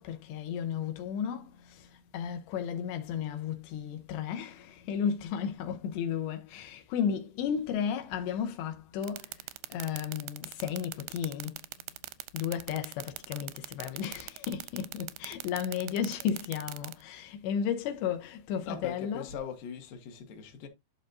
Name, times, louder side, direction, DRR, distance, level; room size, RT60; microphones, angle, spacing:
voice 1, 0.0-9.3 9.7-11.6 12.3-19.3, left 8 dB, 85° left, 3.1 m, -34 dB
sound 1, 9.0-16.9, right 20 dB, 90° right, 2.8 m, -39 dB
voice 2, 18.6-20.7, left 7 dB, 60° left, 2.9 m, -40 dB
11.5 x 5.4 x 2.6 m
omnidirectional pair, 4.9 m